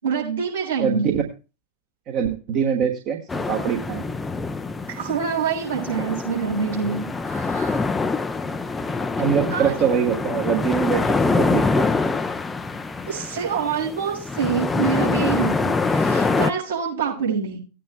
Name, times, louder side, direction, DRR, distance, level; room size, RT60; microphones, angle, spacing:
voice 1, 0.0-1.2 4.9-7.8 9.5-9.7 13.0-17.6, right 6 dB, 70° right, -4 dB, 6.7 m, -26 dB
voice 2, 0.8-1.2 2.1-3.2 3.5-4.1 9.2-11.9, right 7 dB, 40° right, 2 dB, 1.4 m, -23 dB
sound 1, 3.3-16.5, left 3 dB, 10° left, 0.5 m, -25 dB
18.5 x 9.2 x 2.2 m, 0.32 s
figure-of-eight pair, 90°, 0 cm